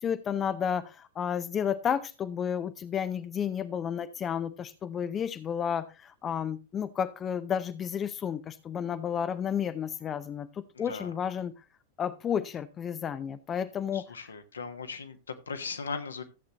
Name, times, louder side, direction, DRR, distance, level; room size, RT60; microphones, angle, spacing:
voice 1, 0.0-11.5 12.0-14.0, left 8 dB, 25° left, 13 dB, 0.6 m, -32 dB
voice 2, 10.7-11.1 13.9-16.2, left 5 dB, 70° left, 8 dB, 1.3 m, -38 dB
14.0 x 8.1 x 2.9 m, 0.29 s
figure-of-eight pair, 90°, 0 cm